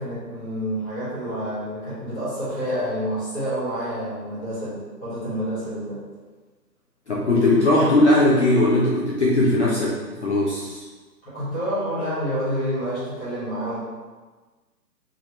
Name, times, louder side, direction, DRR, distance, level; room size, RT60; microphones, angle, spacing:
voice 1, 0.0-6.0 11.2-13.8, equal, 10° left, -13 dB, 1.1 m, -28 dB
voice 2, 7.1-10.8, left 1 dB, 45° left, -5 dB, 0.6 m, -19 dB
3.7 x 3.2 x 3.0 m, 1.3 s
figure-of-eight pair, 140°, 50 cm